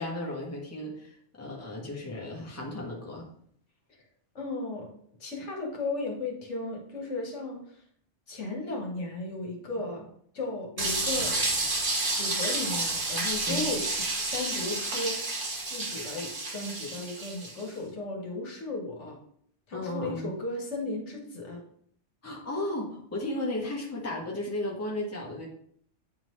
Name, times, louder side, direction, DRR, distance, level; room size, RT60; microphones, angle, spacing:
voice 1, 0.0-3.3 13.5-13.8 19.7-20.3 22.2-25.5, left 1 dB, 15° left, -2 dB, 1.1 m, -34 dB
voice 2, 4.3-4.9 5.2-7.6 8.3-10.0 10.3-11.6 12.1-13.9 14.3-15.2 15.7-19.2 19.7-21.6, left 2 dB, 70° left, 0 dB, 1.6 m, -35 dB
sound 1, 10.8-17.6, right 2 dB, 50° right, 1.2 m, -30 dB
8.5 x 3.7 x 3.1 m, 0.63 s
omnidirectional pair, 1.2 m